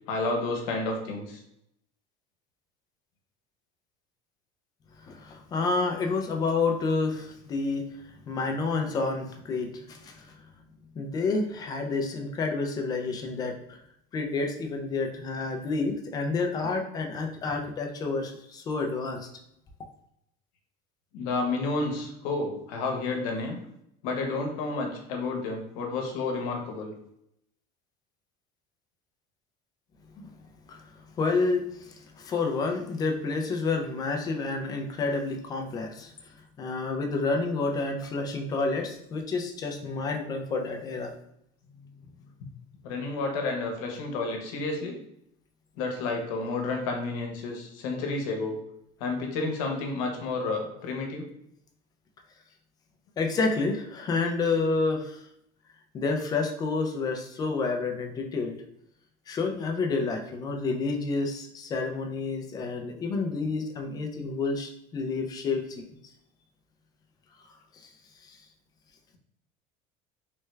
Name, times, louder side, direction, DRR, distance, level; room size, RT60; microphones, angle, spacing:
voice 1, 0.1-1.4 21.1-23.6 24.0-26.9 41.8-41.9 42.8-45.0 45.8-48.6 49.0-51.2, left 3 dB, 85° left, 2 dB, 0.8 m, -30 dB
voice 2, 5.0-7.9 8.3-10.2 11.0-13.8 14.1-19.3 30.2-30.3 30.7-30.8 31.2-36.1 36.6-41.1 53.2-55.2 55.9-58.6 59.3-65.8 68.2-68.4, left 3 dB, 20° left, 3 dB, 0.3 m, -29 dB
3.2 x 2.2 x 3.1 m, 0.77 s
cardioid pair, 170°, 18 cm